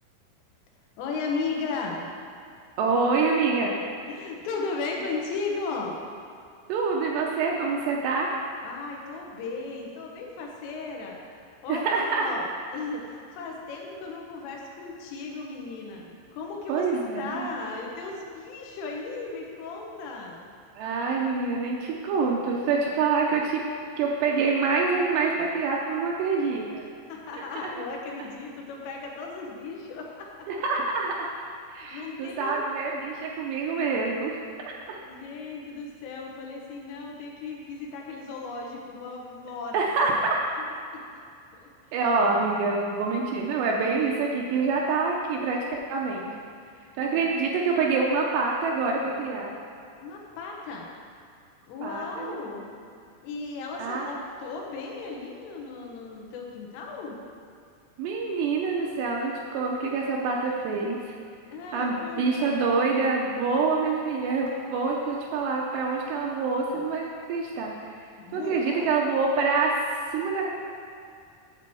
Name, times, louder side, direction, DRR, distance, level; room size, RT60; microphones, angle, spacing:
voice 1, 1.0-2.1 4.1-6.1 8.6-11.2 11.5-16.9 17.2-20.5 27.1-30.5 31.9-32.7 35.0-39.8 40.6-40.7 40.9-41.0 47.0-47.3 50.0-50.9 51.7-52.8 53.2-57.2 61.5-62.6 68.2-68.9, left 4 dB, 90° left, 0 dB, 3.8 m, -36 dB
voice 2, 2.8-3.8 6.7-8.3 11.7-12.4 16.7-17.5 20.8-23.6 24.0-26.9 30.5-31.3 31.7-34.4 34.9-35.0 39.7-40.4 41.9-46.3 47.0-49.5 51.8-52.4 53.8-54.1 58.0-61.1 61.7-67.0 67.3-68.0 68.3-69.7 70.1-70.5, right 4 dB, 80° right, -1 dB, 2.6 m, -26 dB
10.5 x 4.5 x 7.6 m, 2.4 s
omnidirectional pair, 5.6 m